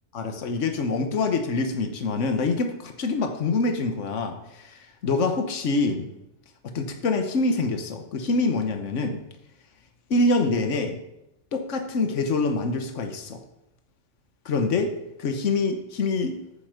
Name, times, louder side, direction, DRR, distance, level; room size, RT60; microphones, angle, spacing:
voice 1, 0.1-6.1 6.6-9.2 10.1-11.0 11.5-13.4 14.4-14.9 15.2-16.4, left 3 dB, 75° left, 6 dB, 1.4 m, -25 dB
9.5 x 7.1 x 6.6 m, 0.87 s
omnidirectional pair, 1.3 m